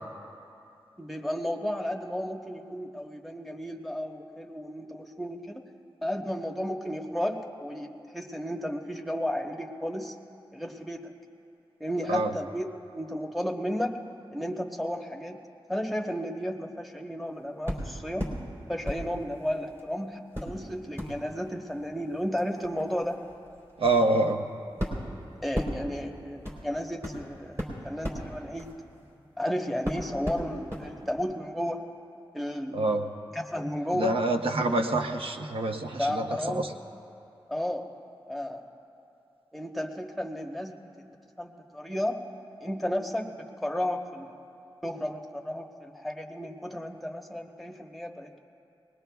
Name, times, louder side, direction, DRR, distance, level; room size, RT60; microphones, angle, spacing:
voice 1, 1.0-5.6 6.0-10.1 10.5-11.1 11.8-12.7 12.9-14.0 14.3-15.4 15.7-18.3 18.7-23.2 25.4-28.7 29.4-31.8 32.3-32.9 33.3-34.2 36.0-36.7 37.5-37.9 38.3-38.6 39.5-41.1 41.4-42.2 42.6-44.3 44.8-48.4, equal, ahead, 2 dB, 1.0 m, -33 dB
sound 1, 17.7-18.4 18.8-19.8 20.3-29.4 29.8-30.9 31.2-31.3, equal, 30° right, 3.5 m, -37 dB
voice 2, 23.8-24.5 32.7-33.0 33.9-36.6, right 2 dB, 90° right, 4 dB, 0.8 m, -26 dB
23.0 x 20.0 x 2.3 m, 2.7 s
wide cardioid pair, 85°, 9 cm